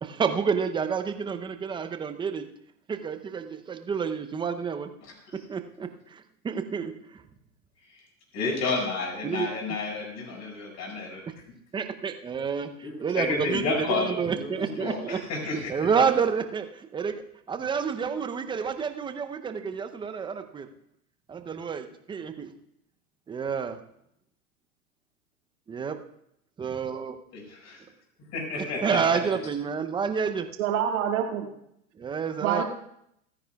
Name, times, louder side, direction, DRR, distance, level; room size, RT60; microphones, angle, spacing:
voice 1, 0.0-2.5 2.9-4.9 5.5-7.2 9.2-9.5 11.7-15.2 15.7-17.2 17.5-20.7 21.3-22.5 23.3-23.8 25.7-26.0 26.6-27.2 28.6-30.5 32.0-32.6, right 6 dB, 10° right, 8 dB, 0.7 m, -29 dB
voice 2, 8.3-11.2 12.8-15.6 27.3-27.8 28.3-29.2, left 3 dB, 35° left, 0 dB, 6.1 m, -31 dB
voice 3, 30.6-31.5 32.4-32.6, right 9 dB, 55° right, 3 dB, 2.2 m, -26 dB
29.0 x 9.9 x 2.4 m, 0.75 s
hypercardioid pair, 110°, 46 cm